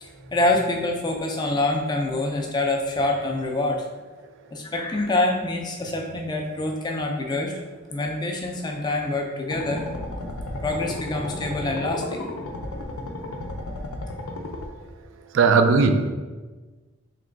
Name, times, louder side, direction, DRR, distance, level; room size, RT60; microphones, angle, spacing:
voice 1, 0.0-3.8 4.5-7.5 7.9-9.8 10.6-12.2, left 2 dB, 20° left, 2 dB, 0.3 m, -26 dB
sound 1, 9.5-14.7, left 2 dB, 85° left, 0.5 m, -33 dB
voice 2, 15.3-16.1, right 4 dB, 65° right, 7 dB, 0.3 m, -17 dB
3.3 x 3.0 x 3.8 m, 1.3 s
head